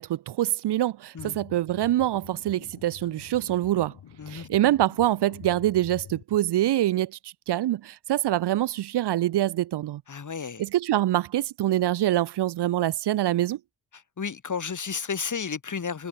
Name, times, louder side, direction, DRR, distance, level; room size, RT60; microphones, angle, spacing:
voice 1, 0.0-3.9 4.3-10.0 10.6-13.6, right 13 dB, 75° right, 0.8 m, -25 dB
sound 1, 1.2-6.2, left 9 dB, 75° left, 7.4 m, -47 dB
voice 2, 10.1-10.6 14.2-16.1, left 6 dB, 45° left, 4.8 m, -32 dB
cardioid pair, 80°, 41 cm